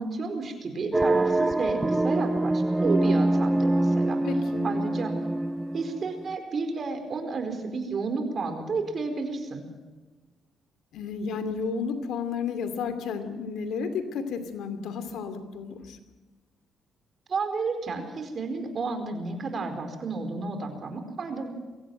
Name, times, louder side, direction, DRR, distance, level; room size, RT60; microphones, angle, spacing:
voice 1, 0.0-4.2 4.6-5.1 5.7-9.6 17.3-21.5, right 4 dB, 45° right, 6 dB, 4.6 m, -31 dB
sound 1, 0.9-6.4, right 2 dB, 15° right, 0.7 m, -25 dB
voice 2, 4.2-4.7 10.9-16.0, left 5 dB, 80° left, 10 dB, 2.6 m, -32 dB
23.0 x 16.5 x 7.9 m, 1.3 s
cardioid pair, 90°, 0 cm